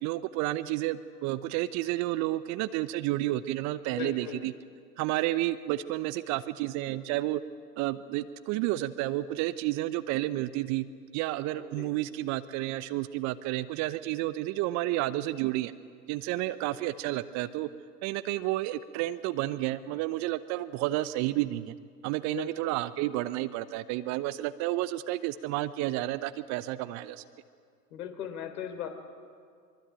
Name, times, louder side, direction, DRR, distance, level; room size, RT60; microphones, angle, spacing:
voice 1, 0.0-4.5 5.0-7.4 7.8-10.8 11.1-15.7 16.1-17.7 18.0-21.7 22.0-27.2, right 16 dB, 35° right, 13 dB, 0.9 m, -31 dB
voice 2, 3.9-4.5 11.5-11.9 22.3-22.7 27.9-28.9, left 9 dB, 60° left, 6 dB, 3.9 m, -39 dB
23.5 x 23.5 x 9.0 m, 2.2 s
hypercardioid pair, 100°, 49 cm